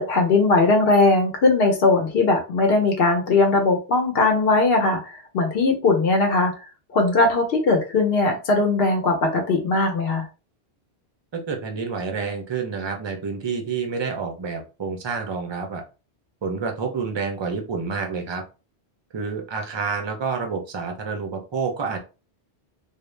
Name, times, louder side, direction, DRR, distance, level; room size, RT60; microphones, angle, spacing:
voice 1, 0.0-6.5 6.9-10.3, left 3 dB, 65° left, 2 dB, 0.9 m, -19 dB
voice 2, 11.3-15.8 16.4-18.4 19.1-22.0, right 5 dB, 40° right, 3 dB, 0.4 m, -28 dB
2.4 x 2.1 x 3.1 m, 0.31 s
omnidirectional pair, 1.1 m